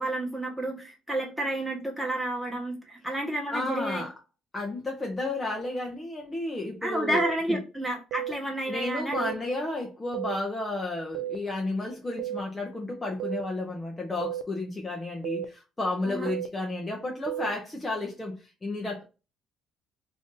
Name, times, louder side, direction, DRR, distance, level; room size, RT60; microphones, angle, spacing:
voice 1, 0.0-4.0 6.8-9.3 16.0-16.3, right 1 dB, 5° right, 1.0 m, -30 dB
voice 2, 3.5-4.1 4.5-7.2 7.5-7.6 8.7-19.0, left 2 dB, 15° left, 0.5 m, -32 dB
sound 1, 7.1-7.3 8.1-8.3 9.1-9.3 10.1-10.3 11.1-11.3 12.2-12.4 13.2-13.4 14.2-14.4 15.2-15.4 16.2-16.5 17.3-17.5, right 13 dB, 90° right, 0.4 m, -32 dB
2.5 x 2.5 x 3.7 m
cardioid pair, 140°, 0 cm